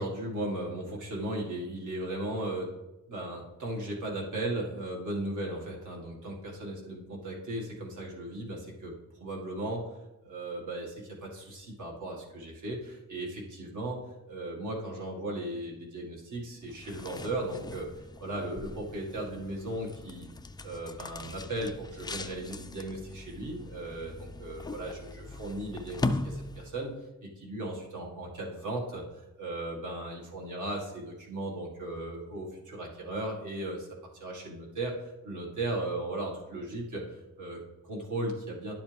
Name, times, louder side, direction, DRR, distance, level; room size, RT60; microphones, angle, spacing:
voice 1, 0.0-2.7 3.1-8.9 9.2-9.9 10.2-14.0 14.3-20.3 20.6-26.9 27.2-33.9 34.1-38.7, right 1 dB, 65° right, -2 dB, 2.0 m, -36 dB
sound 1, 16.6-27.0, left 2 dB, 15° left, 0.3 m, -39 dB
11.0 x 7.0 x 3.4 m, 1.0 s
wide cardioid pair, 150°, 33 cm